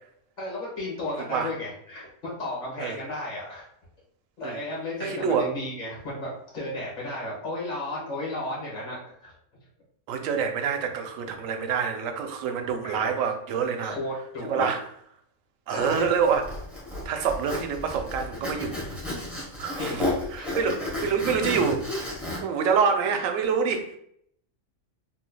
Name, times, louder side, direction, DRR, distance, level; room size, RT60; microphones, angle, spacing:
voice 1, 0.4-3.7 4.4-9.3 12.8-13.1 13.8-14.7 15.7-16.1 19.8-20.0 20.4-20.5, left 1 dB, 35° left, -5 dB, 1.4 m, -34 dB
voice 2, 5.0-5.5 10.1-14.0 14.5-14.8 15.7-16.5 17.0-18.8 19.6-20.0 20.3-21.9 22.4-24.0, right 6 dB, 85° right, 5 dB, 1.0 m, -26 dB
Zipper (clothing), 15.8-22.4, left 1 dB, ahead, 0.8 m, -32 dB
3.7 x 3.1 x 2.2 m, 0.69 s
omnidirectional pair, 1.3 m